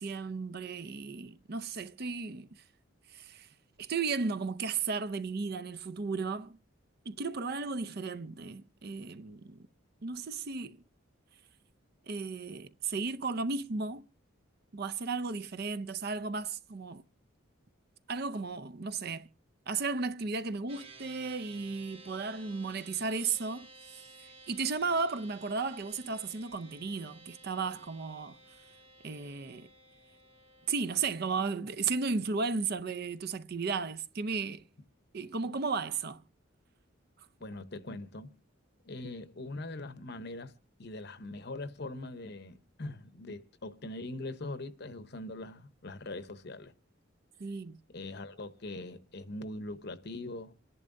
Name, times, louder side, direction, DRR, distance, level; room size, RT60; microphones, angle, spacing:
voice 1, 0.0-2.5 3.1-3.5 3.8-6.6 7.1-9.7 10.0-10.8 12.1-14.1 14.7-17.0 18.1-19.3 19.7-24.0 24.5-28.4 29.0-29.7 30.7-34.6 35.1-36.2 47.4-47.8, right 4 dB, 50° right, 0.6 m, -34 dB
sound 1, 20.7-31.5, right 2 dB, 25° right, 1.0 m, -55 dB
voice 2, 37.4-38.3 38.8-40.5 40.8-46.7 47.9-50.5, left 2 dB, 55° left, 0.8 m, -42 dB
27.0 x 11.0 x 2.6 m
head